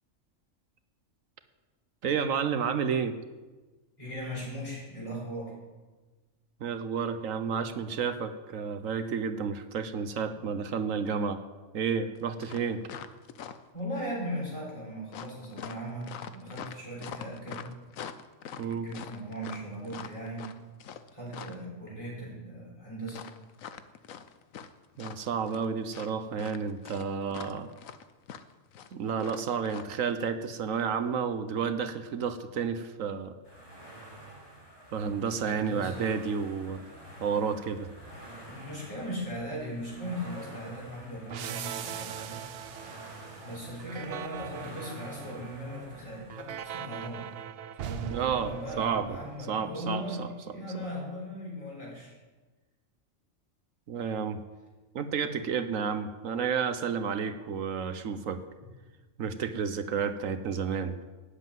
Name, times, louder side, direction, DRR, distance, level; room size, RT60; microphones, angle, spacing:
voice 1, 2.0-3.1 6.6-11.4 11.7-12.8 18.6-18.9 25.0-27.7 28.9-33.3 34.9-36.9 37.2-37.9 48.1-49.2 49.5-50.3 53.9-54.4 54.9-58.4 59.2-60.9, right 6 dB, 80° right, 10 dB, 1.3 m, -31 dB
voice 2, 4.0-5.5 10.4-10.5 13.7-17.7 18.7-20.5 21.1-23.3 35.4-36.1 38.5-42.4 43.4-47.3 47.8-52.1, equal, 25° left, -5 dB, 6.0 m, -38 dB
sound 1, 12.1-12.2 12.4-13.8 15.1-21.6 23.1-24.7 24.9-25.7 25.9-29.8, left 8 dB, 85° left, 1.2 m, -43 dB
sound 2, 33.4-47.4, right 1 dB, 55° left, 3.4 m, -49 dB
sound 3, 41.3-49.8, right 10 dB, 60° right, 0.7 m, -41 dB
13.5 x 8.3 x 9.2 m, 1.3 s
omnidirectional pair, 1.4 m